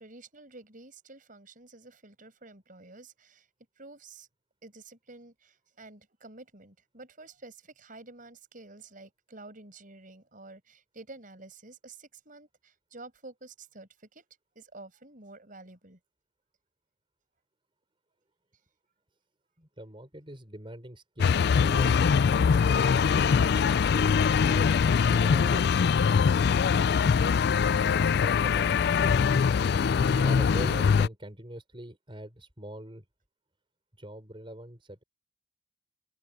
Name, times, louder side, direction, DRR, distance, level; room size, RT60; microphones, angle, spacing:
voice 1, 0.0-3.5 3.8-4.3 4.6-14.2 14.5-16.0, right 2 dB, 45° right, 6.0 m, -50 dB
voice 2, 19.6-21.9 22.6-23.1 23.4-23.5 23.8-26.0 28.2-29.4 29.9-33.0 34.0-35.0, right 1 dB, 25° right, 4.9 m, -43 dB
sound 1, 21.2-31.1, left 6 dB, 55° left, 0.3 m, -23 dB
head